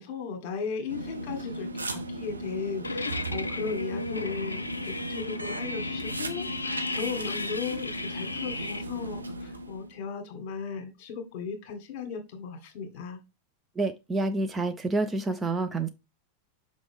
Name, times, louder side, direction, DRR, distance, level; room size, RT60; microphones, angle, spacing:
voice 1, 0.0-13.2, left 5 dB, 45° left, 1.7 m, -36 dB
sound 1, 0.9-10.0, right 1 dB, 80° right, 0.7 m, -36 dB
sound 2, 2.8-8.8, left 3 dB, 80° left, 0.5 m, -35 dB
voice 2, 13.8-15.9, right 2 dB, 15° right, 0.5 m, -28 dB
6.0 x 4.9 x 3.5 m
figure-of-eight pair, 90°, 0 cm